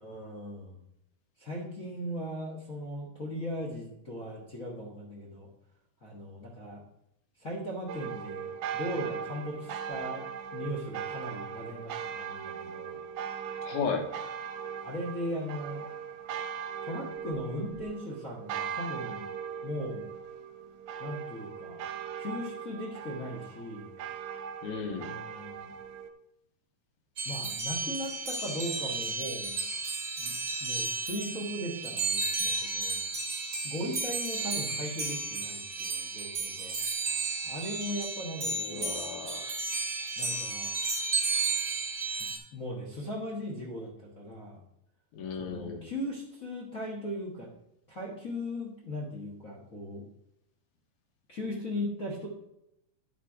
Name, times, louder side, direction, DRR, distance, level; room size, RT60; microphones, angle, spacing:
voice 1, 0.0-0.8 1.4-5.5 6.0-6.8 7.4-13.0 14.8-15.8 16.8-19.3 19.6-20.1 21.0-21.8 22.2-23.9 24.9-25.7 27.2-29.6 30.2-30.3 30.6-33.0 33.6-36.8 37.4-38.8 40.2-40.7 42.2-44.6 45.4-47.5 47.9-50.0 51.3-52.3, left 1 dB, 50° left, -2 dB, 0.9 m, -38 dB
sound 1, 7.9-26.1, right 7 dB, 75° right, 1.8 m, -39 dB
voice 2, 13.6-14.1 24.6-25.2 38.7-39.5 45.1-45.9, left 5 dB, 70° left, 3 dB, 2.4 m, -34 dB
sound 2, 27.2-42.4, right 4 dB, 50° right, 1.0 m, -33 dB
10.5 x 4.4 x 4.9 m, 0.82 s
omnidirectional pair, 3.7 m